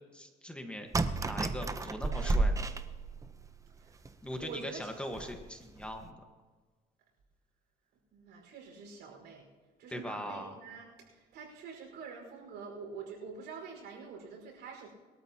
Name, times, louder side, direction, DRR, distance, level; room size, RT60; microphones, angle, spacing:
voice 1, 0.1-0.9 1.2-2.7 4.2-6.2 9.9-10.6, equal, 5° left, 4 dB, 1.5 m, -41 dB
sound 1, 0.9-3.5 4.0-4.1 4.4-4.5 5.1-5.4 5.8-6.0, right 3 dB, 20° right, 0.8 m, -32 dB
voice 2, 4.4-5.0 8.1-9.4 9.8-14.9, right 5 dB, 80° right, 0 dB, 5.1 m, -46 dB
22.0 x 13.0 x 2.9 m, 1.4 s
cardioid pair, 110°, 17 cm